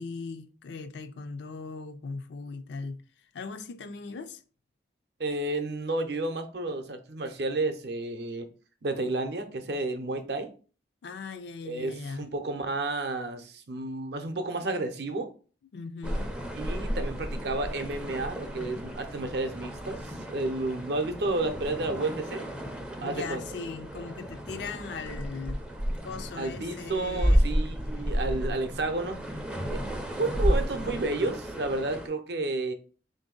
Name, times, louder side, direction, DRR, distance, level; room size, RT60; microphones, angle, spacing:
voice 1, 0.0-3.0 3.3-4.4 11.0-12.3 15.7-16.4 23.0-25.6 26.0-27.5 28.0-28.1, left 4 dB, 70° left, 0.4 m, -39 dB
voice 2, 5.2-8.4 8.8-10.5 11.6-15.3 16.6-20.0 20.3-22.5 23.0-23.4 26.4-29.2 29.6-29.8 30.2-32.7, right 2 dB, 65° right, 0.6 m, -31 dB
sound 1, 16.0-32.1, equal, 5° right, 0.4 m, -32 dB
3.4 x 2.6 x 3.8 m
head